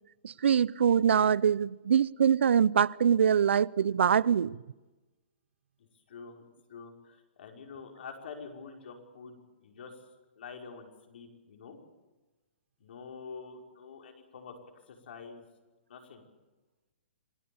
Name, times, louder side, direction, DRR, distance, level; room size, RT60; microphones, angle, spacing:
voice 1, 0.2-4.6, right 8 dB, 80° right, 0.7 m, -24 dB
voice 2, 5.8-10.0 10.4-11.8 12.8-14.6 14.9-15.4 15.9-16.2, left 5 dB, 65° left, 5.5 m, -47 dB
27.0 x 18.5 x 7.2 m
hypercardioid pair, 170°, 6 cm